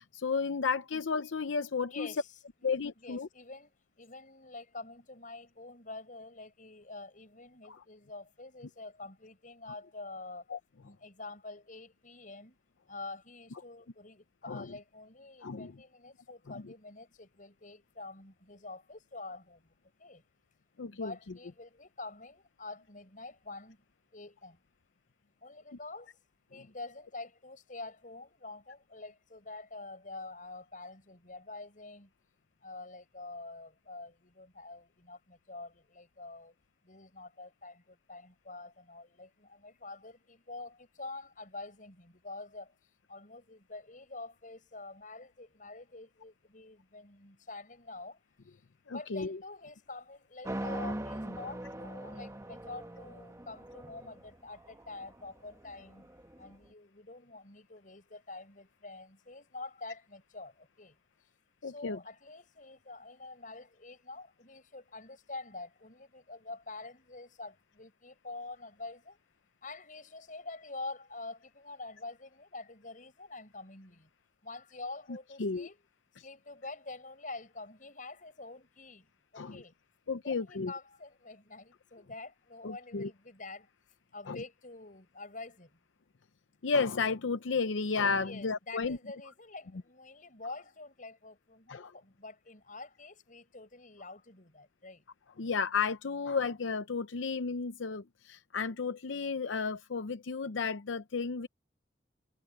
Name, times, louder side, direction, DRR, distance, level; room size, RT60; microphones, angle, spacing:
voice 1, 0.0-2.1 2.6-3.3 7.7-7.8 10.5-10.6 14.4-14.7 15.4-15.7 16.5-16.7 20.8-21.1 26.5-26.6 48.9-49.4 61.6-62.0 75.4-75.7 76.2-76.3 79.4-79.6 80.1-80.7 82.6-83.1 84.3-84.4 86.6-89.0 91.7-91.9 95.4-101.5, left 5 dB, 90° left, 0.6 m, -33 dB
voice 2, 1.9-2.2 3.0-10.5 10.8-12.6 12.9-19.6 20.0-20.2 20.9-23.8 24.1-24.6 25.4-26.2 26.5-32.1 32.6-36.5 36.8-42.7 43.1-48.2 48.5-48.6 48.9-56.1 56.4-61.0 61.6-69.2 69.6-74.1 74.4-75.8 76.2-79.7 80.2-83.7 84.1-85.8 88.2-95.0, left 3 dB, 45° left, 7.4 m, -47 dB
sound 1, 50.4-56.5, right 1 dB, 15° right, 1.2 m, -41 dB
head